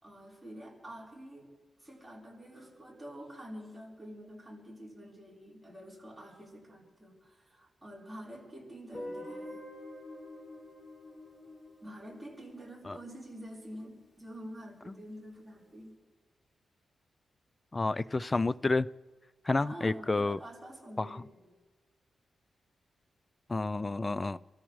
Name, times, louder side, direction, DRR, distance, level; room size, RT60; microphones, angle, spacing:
voice 1, 0.0-1.5 1.8-9.7 11.8-16.0 18.3-18.7 19.6-21.4, equal, 10° right, -5 dB, 4.2 m, -48 dB
Guitar, 8.9-13.8, left 1 dB, 40° left, 5.5 m, -47 dB
voice 2, 17.7-18.9 19.5-20.4 21.0-21.1 23.5-24.4, left 3 dB, 25° left, 16 dB, 0.3 m, -29 dB
27.5 x 14.0 x 3.2 m, 1.4 s
wide cardioid pair, 115°, 0 cm